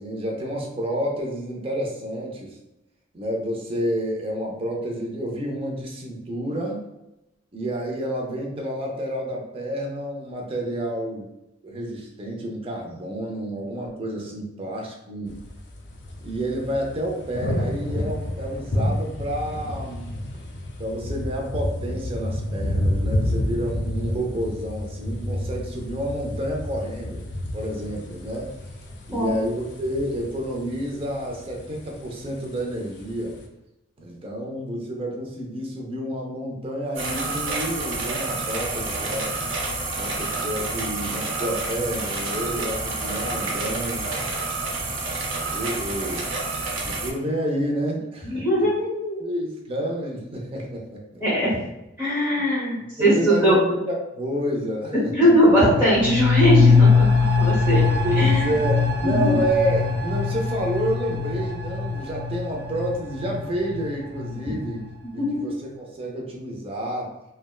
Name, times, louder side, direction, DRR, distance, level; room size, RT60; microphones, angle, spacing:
voice 1, 0.0-2.6 3.1-6.8 7.5-11.3 11.6-15.4 16.2-20.1 20.8-27.2 27.5-28.5 29.1-33.4 34.0-39.3 40.0-44.1 45.5-46.2 46.8-48.7 49.2-51.2 52.3-52.5 53.0-55.2 58.0-64.8 65.1-67.1, equal, 30° right, 0 dB, 0.5 m, -29 dB
sound 1, 15.3-33.5, left 1 dB, 60° left, 0.4 m, -30 dB
sound 2, 36.9-47.1, right 3 dB, 85° right, 0.6 m, -29 dB
voice 2, 48.2-49.2 51.2-51.6 52.0-53.6 54.9-57.1 57.4-57.8 58.1-58.5 59.0-59.3 64.4-64.5 65.2-65.4, equal, 10° right, -10 dB, 1.0 m, -20 dB
sound 3, 55.4-64.8 65.2-65.3, left 4 dB, 55° right, 0.9 m, -22 dB
3.3 x 2.1 x 2.3 m, 0.94 s
head